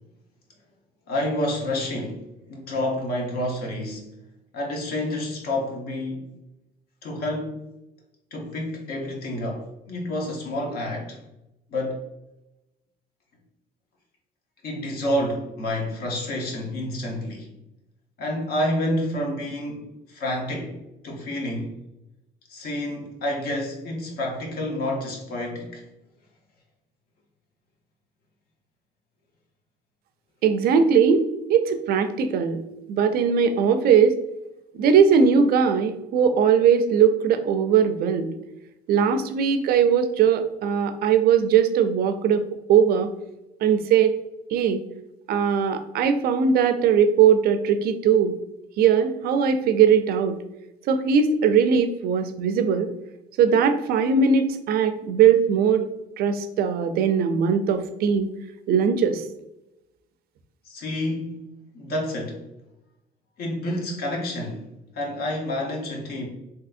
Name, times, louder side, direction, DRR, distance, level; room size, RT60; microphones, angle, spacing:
voice 1, 1.1-2.2 2.5-4.1 4.5-6.3 7.0-7.6 8.3-11.2 11.7-12.0 14.6-17.5 18.2-20.8 21.0-21.7 22.5-25.8 60.7-61.4 61.7-62.4 63.4-64.7 64.9-66.3, left 1 dB, 65° left, 0.9 m, -29 dB
voice 2, 30.4-31.2 31.5-32.6 32.9-34.2 34.8-38.3 38.9-43.1 43.6-44.1 44.5-44.8 45.3-48.3 48.8-50.4 50.9-52.9 53.4-55.9 56.2-58.3 58.7-59.2, right 7 dB, 65° right, 0.4 m, -20 dB
3.6 x 2.7 x 2.4 m
cardioid pair, 110°, 17 cm